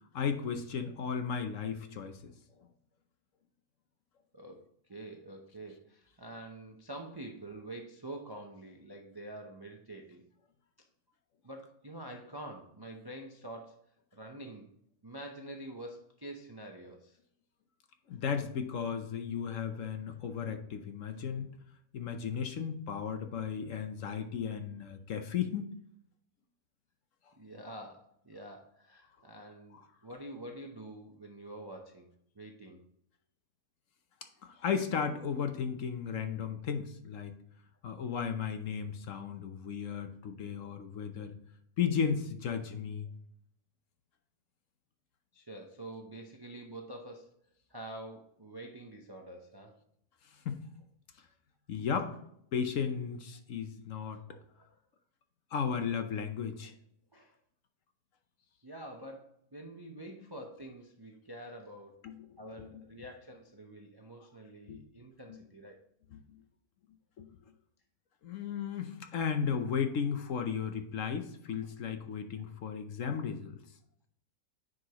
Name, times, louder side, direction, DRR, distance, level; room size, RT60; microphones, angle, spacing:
voice 1, 0.1-2.3 18.1-21.5 21.9-25.7 34.4-37.3 37.8-41.3 41.8-43.1 50.4-50.6 51.7-52.2 52.5-54.2 55.5-56.7 62.0-62.3 62.6-62.8 64.7-64.8 66.1-66.2 67.2-67.3 68.2-73.6, left 7 dB, 60° left, 7 dB, 1.0 m, -35 dB
voice 2, 4.9-10.3 11.4-13.8 14.1-14.7 15.0-17.2 27.4-32.1 32.3-32.8 45.3-47.3 47.7-49.7 54.3-54.7 57.1-57.3 58.6-62.0 62.4-65.8, right 1 dB, 30° right, 2 dB, 0.4 m, -47 dB
9.6 x 5.2 x 2.9 m, 0.71 s
omnidirectional pair, 1.7 m